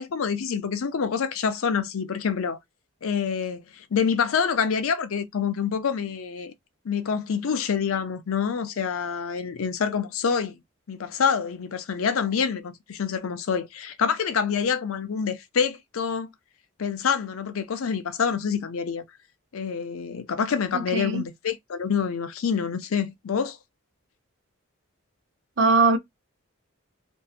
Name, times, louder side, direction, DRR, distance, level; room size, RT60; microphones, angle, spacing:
voice 1, 0.0-2.6 3.0-6.5 6.8-10.6 10.9-16.3 16.8-19.0 19.5-23.6, left 6 dB, 80° left, 0.5 m, -27 dB
voice 2, 20.7-21.2 25.6-26.0, right 3 dB, 55° right, 0.6 m, -21 dB
2.7 x 2.2 x 2.3 m
head